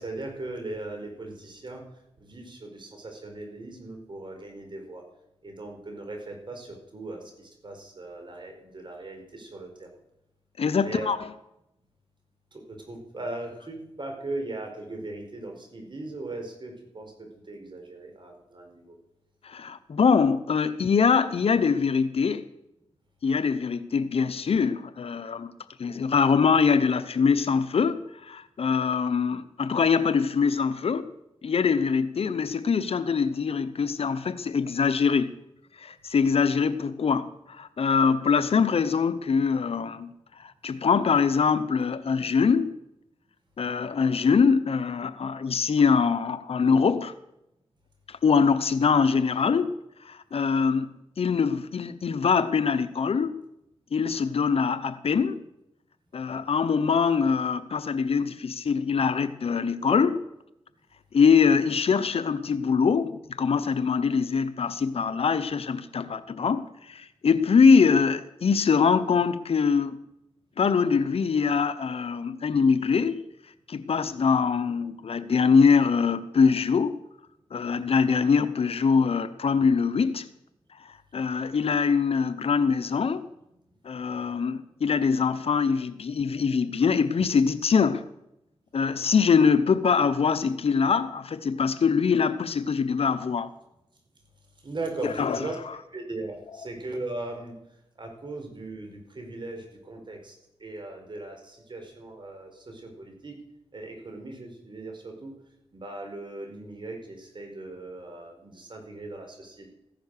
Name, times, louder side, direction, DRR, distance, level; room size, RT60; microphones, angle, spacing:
voice 1, 0.0-1.8 2.2-5.0 5.4-9.9 10.8-11.1 12.7-18.9 94.6-95.6 95.9-97.5 98.0-100.3 100.6-103.3 103.7-105.3 105.7-109.7, right 2 dB, 50° right, 4.6 m, -38 dB
voice 2, 10.6-11.2 19.4-22.4 23.2-25.5 25.8-31.1 31.4-35.3 35.8-40.1 40.4-42.7 43.6-47.1 48.1-49.7 50.0-53.4 53.9-55.4 56.1-60.2 61.1-70.0 70.6-73.2 73.7-77.0 77.5-80.3 80.8-83.3 83.8-88.0 88.7-93.5 95.0-95.5, left 5 dB, 70° left, 0.9 m, -23 dB
15.0 x 10.5 x 6.7 m
cardioid pair, 60°, 10 cm